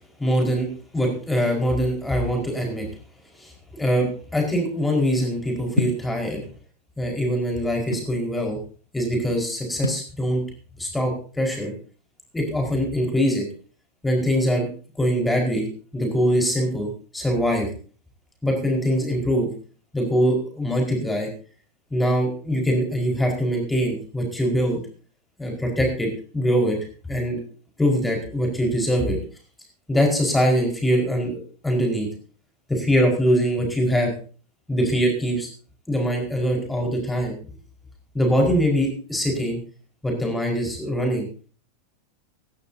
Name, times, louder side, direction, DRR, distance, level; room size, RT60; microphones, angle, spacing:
voice 1, 0.2-0.7 0.9-2.9 3.4-3.5 3.8-6.4 7.0-8.6 8.9-10.4 10.8-11.7 12.3-13.5 14.0-14.7 15.0-15.7 15.9-17.7 18.4-19.5 19.9-21.3 21.9-24.8 25.4-26.8 27.0-27.4 27.8-29.2 29.9-31.4 31.6-32.1 32.7-34.2 34.7-35.5 35.9-37.4 38.1-39.6 40.0-41.3, equal, 5° left, 1 dB, 4.9 m, -23 dB
sound 1, 5.8-6.1 7.0-8.2 9.8-10.1, left 4 dB, 80° left, 0.8 m, -27 dB
18.5 x 13.0 x 2.8 m, 0.39 s
figure-of-eight pair, 90°, 0 cm